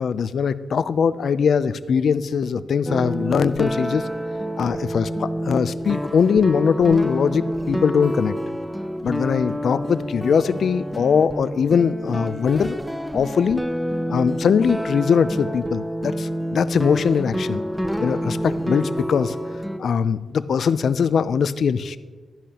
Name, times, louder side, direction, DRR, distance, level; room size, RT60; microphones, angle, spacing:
voice 1, 0.0-4.1 4.6-8.3 9.0-12.8 13.1-13.6 14.1-17.6 18.0-19.4 19.8-22.0, left 6 dB, 70° left, 15 dB, 0.4 m, -21 dB
sound 1, 2.9-19.8, equal, ahead, 0.4 m, -28 dB
12.5 x 10.0 x 2.9 m, 1.4 s
wide cardioid pair, 140°, 0 cm